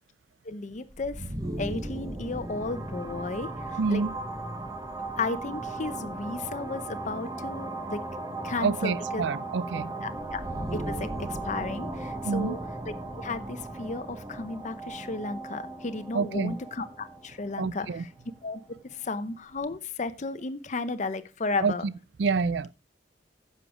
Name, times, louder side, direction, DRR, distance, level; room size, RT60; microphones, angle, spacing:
voice 1, 0.4-1.3 1.6-4.0 5.2-8.0 8.4-9.2 10.0-10.4 10.7-12.6 13.2-18.1 18.4-18.6 18.9-21.8, left 3 dB, 45° left, 0.7 m, -34 dB
sound 1, 0.9-18.6, right 2 dB, 20° right, 1.2 m, -36 dB
voice 2, 3.8-4.1 8.6-9.9 12.3-12.6 16.1-16.6 17.6-18.0 21.6-21.9 22.2-22.7, right 4 dB, 75° right, 0.4 m, -27 dB
10.0 x 6.6 x 4.9 m
head